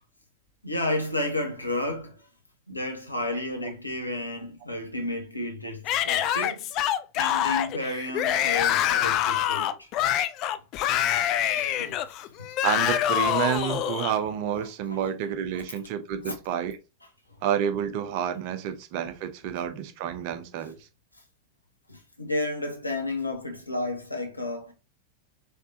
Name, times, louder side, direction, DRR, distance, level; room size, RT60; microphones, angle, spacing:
voice 1, 0.6-2.3 2.7-9.9 10.9-11.1 11.4-12.0 12.2-12.5 14.9-15.0 15.5-15.8 16.2-16.3 21.9-24.7, left 2 dB, 85° left, 1.1 m, -32 dB
Yell / Screaming, 5.9-14.2, left 11 dB, 40° left, 0.4 m, -25 dB
voice 2, 12.6-16.8 17.4-20.7, right 9 dB, 45° right, 0.7 m, -29 dB
4.5 x 3.4 x 2.8 m
figure-of-eight pair, 90°, 0 cm